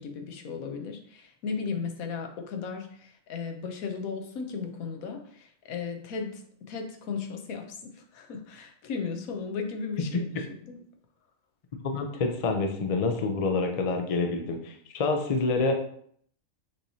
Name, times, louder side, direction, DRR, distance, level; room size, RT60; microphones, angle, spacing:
voice 1, 0.0-10.1 10.6-10.8, left 5 dB, 85° left, 4 dB, 1.2 m, -36 dB
voice 2, 11.8-15.7, left 3 dB, 55° left, 3 dB, 0.4 m, -27 dB
6.4 x 3.0 x 2.7 m, 0.62 s
omnidirectional pair, 1.4 m